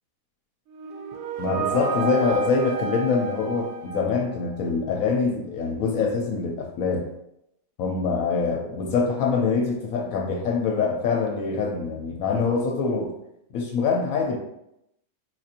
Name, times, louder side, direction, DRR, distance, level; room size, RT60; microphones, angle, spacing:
sound 1, 0.7-4.6, right 5 dB, 70° right, 1.0 m, -31 dB
voice 1, 1.4-7.1 7.8-13.1 13.5-14.4, left 4 dB, 70° left, 1 dB, 1.0 m, -24 dB
4.4 x 2.5 x 2.8 m, 0.82 s
omnidirectional pair, 1.5 m